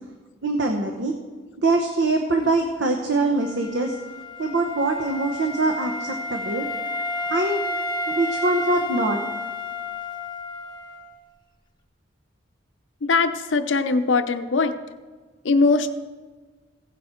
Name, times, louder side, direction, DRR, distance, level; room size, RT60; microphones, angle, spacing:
voice 1, 0.4-1.1 1.6-4.0 4.4-6.7 7.3-7.6 8.1-9.2, right 2 dB, 65° right, 3 dB, 0.9 m, -23 dB
Wind instrument woodwind instrument, 3.4-11.1, left 1 dB, 25° left, 0.8 m, -31 dB
voice 2, 13.0-14.7 15.4-15.9, left 3 dB, 75° left, 10 dB, 0.6 m, -21 dB
16.0 x 7.1 x 4.4 m, 1.4 s
head